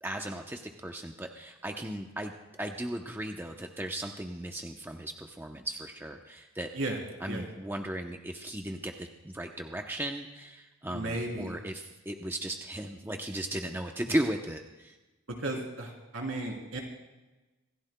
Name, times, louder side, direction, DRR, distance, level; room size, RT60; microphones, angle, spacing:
voice 1, 0.0-2.3 2.6-6.7 7.2-15.0, right 1 dB, 10° right, 3 dB, 0.7 m, -36 dB
voice 2, 10.8-11.6 15.4-16.8, right 2 dB, 70° right, 1 dB, 3.3 m, -34 dB
26.5 x 15.5 x 2.3 m, 1.1 s
head